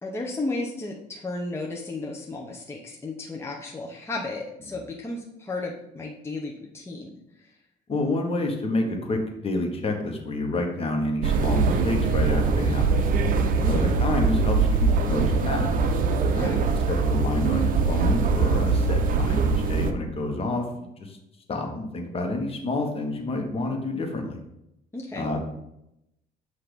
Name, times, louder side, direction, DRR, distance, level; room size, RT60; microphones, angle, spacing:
voice 1, 0.0-7.5 13.6-14.0 16.3-16.6 24.9-25.3, left 2 dB, 15° left, -2 dB, 0.8 m, -34 dB
voice 2, 7.9-13.0 13.6-15.8 16.4-21.2 21.5-24.4 25.2-25.4, left 2 dB, 35° left, 2 dB, 1.3 m, -29 dB
sound 1, 11.2-19.9, right 4 dB, 55° right, 0.7 m, -22 dB
8.0 x 2.8 x 5.1 m, 0.84 s
cardioid pair, 110°, 17 cm